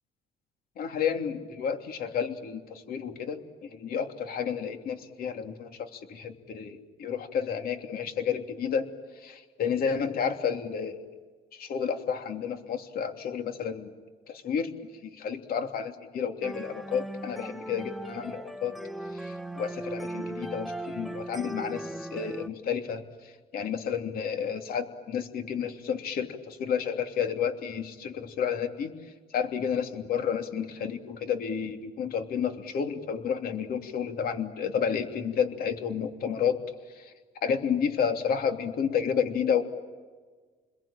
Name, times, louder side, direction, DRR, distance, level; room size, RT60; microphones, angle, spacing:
voice 1, 0.8-8.9 9.2-11.0 11.5-13.9 14.3-14.7 15.0-18.8 19.1-29.0 29.3-36.6 36.9-37.1 37.4-39.6, left 7 dB, 60° left, 5 dB, 3.1 m, -31 dB
sound 1, 16.4-22.5, right 1 dB, ahead, 1.1 m, -38 dB
30.0 x 22.0 x 8.9 m, 1.4 s
cardioid pair, 110°, 17 cm